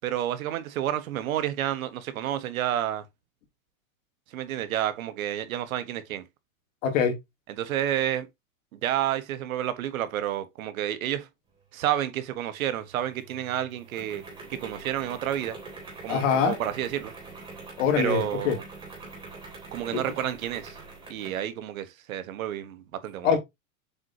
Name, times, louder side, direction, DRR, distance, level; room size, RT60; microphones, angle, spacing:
voice 1, 0.0-3.0 4.3-6.2 7.5-8.3 8.7-11.3 11.7-14.2 14.5-15.5 16.0-17.1 18.0-18.6 19.7-20.8 21.1-23.4, right 11 dB, 80° right, 1.5 m, -30 dB
voice 2, 6.8-7.1 16.1-16.6 17.8-18.6 19.9-20.0 23.2-23.4, left 7 dB, 65° left, 3.0 m, -23 dB
sound 1, 12.7-21.5, right 3 dB, 10° right, 3.0 m, -44 dB
7.3 x 4.8 x 2.8 m
supercardioid pair, 150°, 41 cm